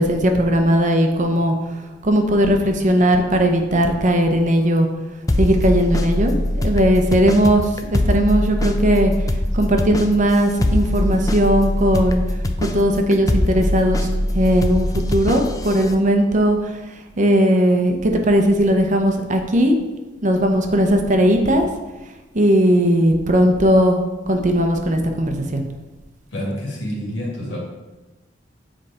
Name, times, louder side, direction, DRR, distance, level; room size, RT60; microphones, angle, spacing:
voice 1, 0.0-1.5 2.0-4.9 5.4-9.1 9.5-12.2 12.6-14.1 14.3-16.7 17.2-19.8 20.2-21.7 22.3-25.6, equal, 45° right, 4 dB, 0.8 m, -18 dB
sound 1, 5.3-15.9, left 1 dB, 20° left, 0.5 m, -22 dB
voice 2, 26.3-27.6, equal, 70° left, -3 dB, 2.3 m, -27 dB
7.7 x 4.8 x 4.3 m, 1.1 s
head